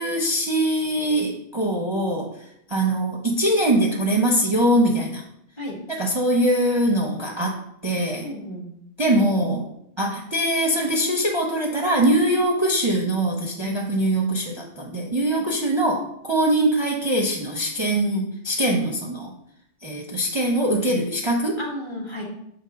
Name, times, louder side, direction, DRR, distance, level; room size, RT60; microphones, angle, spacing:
voice 1, 0.0-5.2 5.9-8.3 9.0-9.7 10.0-19.3 19.8-21.6, right 1 dB, 30° right, -1 dB, 0.6 m, -22 dB
voice 2, 8.2-8.7 13.6-13.7 15.3-15.4 21.6-22.2, left 1 dB, 25° left, -1 dB, 1.1 m, -33 dB
6.4 x 3.1 x 5.0 m, 0.74 s
omnidirectional pair, 1.2 m